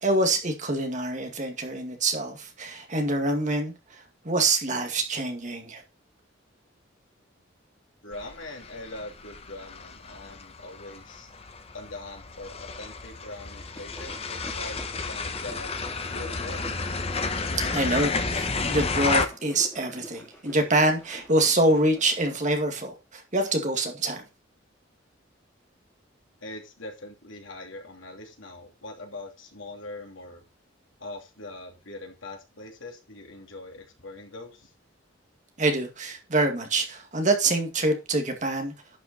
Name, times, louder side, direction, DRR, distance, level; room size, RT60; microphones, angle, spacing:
voice 1, 0.0-3.7 4.2-5.8 17.7-24.3 35.6-38.7, right 2 dB, 40° right, 2.2 m, -25 dB
voice 2, 8.0-11.3 11.7-16.7 26.4-30.4 31.0-34.7, left 2 dB, 85° left, 2.9 m, -42 dB
sound 1, 8.1-19.3, left 4 dB, 30° left, 1.0 m, -31 dB
sound 2, 13.4-22.3, equal, 10° left, 3.1 m, -47 dB
11.0 x 5.8 x 4.2 m
head